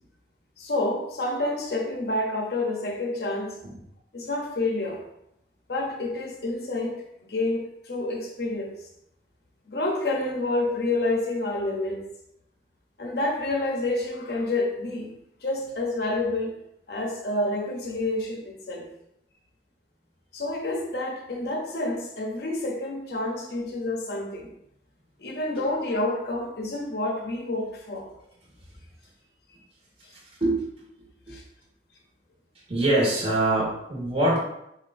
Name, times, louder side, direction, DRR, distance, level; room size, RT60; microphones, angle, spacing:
voice 1, 0.6-3.6 4.1-5.0 5.7-8.7 9.7-12.0 13.0-15.1 15.4-16.5 16.9-18.9 20.3-24.5 25.2-28.1 31.3-31.4, left 2 dB, 60° left, 1 dB, 0.8 m, -28 dB
voice 2, 32.7-34.4, right 1 dB, 35° right, -6 dB, 1.5 m, -24 dB
7.8 x 2.6 x 2.6 m, 0.80 s
head